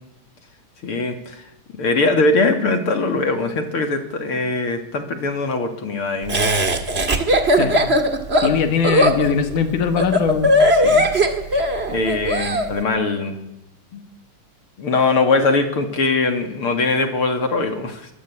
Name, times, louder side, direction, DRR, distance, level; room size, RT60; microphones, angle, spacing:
voice 1, 0.8-1.4 1.8-6.4 10.7-11.0 11.5-11.6 11.9-13.4 13.9-14.0 14.8-18.1, left 3 dB, 45° left, 6 dB, 2.8 m, -21 dB
Laughter, 6.3-12.7, equal, 25° right, 1.5 m, -18 dB
voice 2, 8.4-10.5, left 6 dB, 70° left, 7 dB, 3.5 m, -20 dB
23.0 x 22.5 x 8.6 m, 0.88 s
omnidirectional pair, 3.8 m